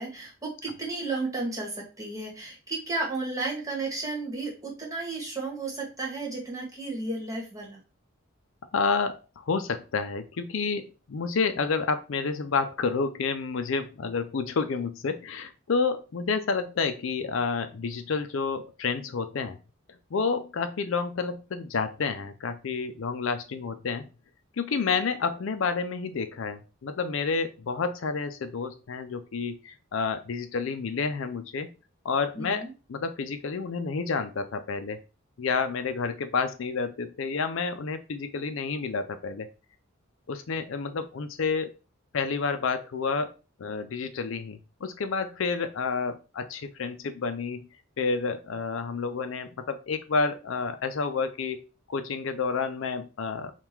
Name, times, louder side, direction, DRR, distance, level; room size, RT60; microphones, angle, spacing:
voice 1, 0.0-7.8 32.3-32.7, right 3 dB, 15° right, -2 dB, 1.5 m, -33 dB
voice 2, 8.7-9.2 9.5-19.6 20.1-24.0 24.6-31.7 32.0-35.0 35.4-39.5 40.3-41.7 42.1-43.3 43.6-47.7 48.0-53.5, left 4 dB, 65° left, 9 dB, 0.5 m, -29 dB
3.7 x 2.4 x 4.4 m, 0.32 s
head